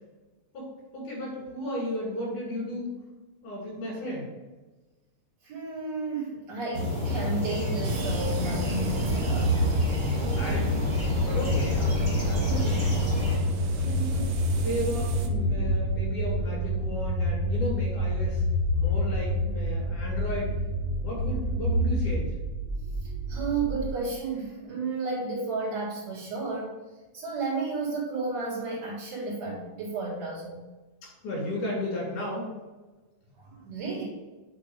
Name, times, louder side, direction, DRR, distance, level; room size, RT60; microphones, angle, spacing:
voice 1, 0.5-2.9 3.4-4.3 10.4-10.9 11.2-13.3 13.8-18.4 18.7-20.5 21.0-22.3 31.0-32.5, left 1 dB, 85° left, -4 dB, 4.1 m, -34 dB
voice 2, 5.4-9.6 23.3-26.7 27.1-30.7 33.4-34.0, right 4 dB, 60° right, -7 dB, 3.2 m, -32 dB
sound 1, 6.7-13.4, left 2 dB, 10° right, 1.5 m, -28 dB
sound 2, 7.8-15.3, right 3 dB, 85° right, 2.2 m, -36 dB
sound 3, 8.7-23.9, equal, 30° right, 2.0 m, -28 dB
7.7 x 3.6 x 4.8 m, 1.2 s
omnidirectional pair, 3.5 m